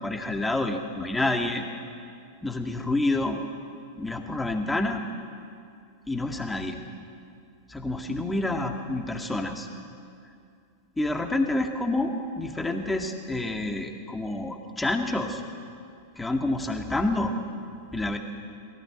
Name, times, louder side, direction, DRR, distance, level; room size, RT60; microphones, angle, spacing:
voice 1, 0.0-1.6 2.4-3.4 4.0-5.0 6.1-6.8 7.7-9.7 11.0-15.4 16.2-17.3 17.9-18.2, left 2 dB, 10° left, 4 dB, 2.0 m, -28 dB
22.0 x 16.5 x 8.2 m, 2.4 s
figure-of-eight pair, 90°, 0 cm